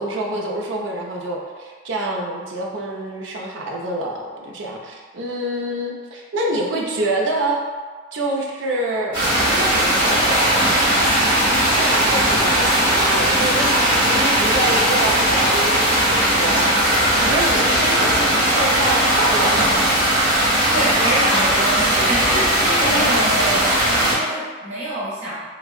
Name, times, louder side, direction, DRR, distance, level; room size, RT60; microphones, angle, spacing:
voice 1, 0.0-7.6 8.1-10.6 11.7-13.8 14.0-19.7 22.8-23.1, right 1 dB, 70° right, -1 dB, 0.5 m, -26 dB
sound 1, 9.1-24.1, right 1 dB, 25° right, 1.1 m, -18 dB
voice 2, 20.7-25.5, right 1 dB, 55° right, -11 dB, 1.0 m, -26 dB
3.5 x 2.0 x 2.4 m, 1.5 s
head